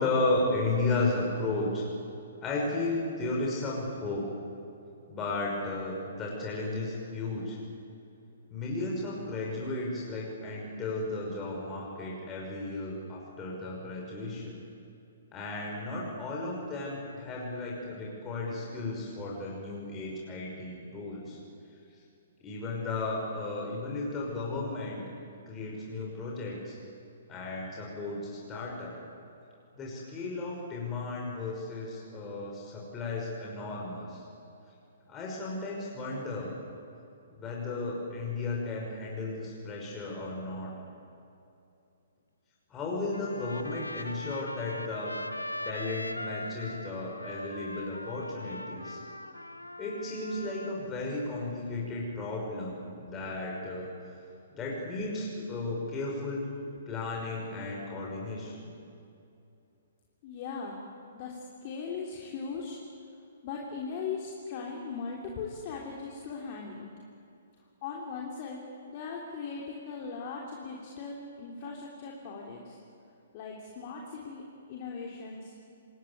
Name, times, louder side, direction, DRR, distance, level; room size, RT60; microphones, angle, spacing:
voice 1, 0.0-1.8 2.4-4.2 5.1-7.6 8.5-14.6 15.3-21.4 22.4-25.0 25.5-26.8 27.3-28.9 29.8-34.2 35.1-36.5 37.4-40.7 42.7-45.2 45.6-49.0 49.8-53.9 54.6-56.4 56.9-58.5, left 2 dB, 20° left, -3 dB, 5.7 m, -34 dB
Trumpet, 43.1-50.8, left 1 dB, 85° left, 1.3 m, -41 dB
voice 2, 60.2-60.8 61.1-62.8 63.4-66.8 67.8-72.8 73.3-74.4 74.7-75.5, left 5 dB, 35° left, -2 dB, 3.4 m, -39 dB
26.5 x 21.0 x 9.6 m, 2.6 s
figure-of-eight pair, 125°, 0 cm